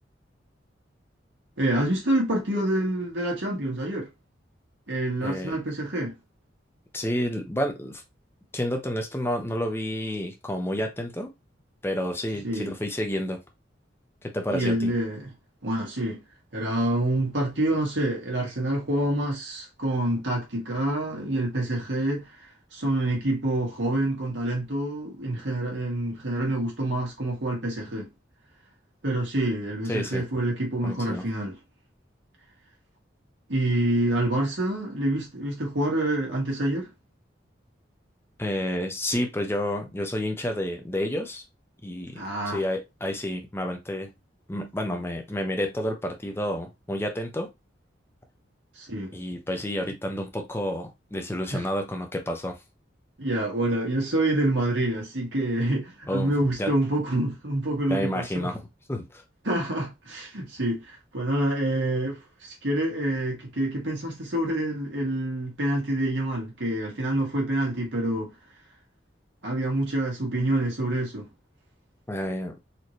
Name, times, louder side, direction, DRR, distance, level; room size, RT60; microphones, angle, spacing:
voice 1, 1.6-4.1 4.9-6.1 12.4-12.7 14.5-15.3 15.6-16.2 16.5-22.3 22.7-28.1 29.0-31.6 33.5-36.9 42.2-42.6 48.8-49.1 51.5-51.6 53.2-58.5 59.4-68.3 69.4-71.3, right 1 dB, 80° right, 1.8 m, -27 dB
voice 2, 5.2-5.6 6.9-8.0 8.5-11.3 11.8-13.4 14.2-14.9 29.9-30.2 30.8-31.2 38.4-41.4 41.8-44.1 44.5-47.5 49.1-52.6 56.1-56.3 56.6-56.7 57.9-58.6 58.9-59.2 72.1-72.6, equal, 15° left, 0.7 m, -30 dB
4.2 x 2.8 x 3.1 m
head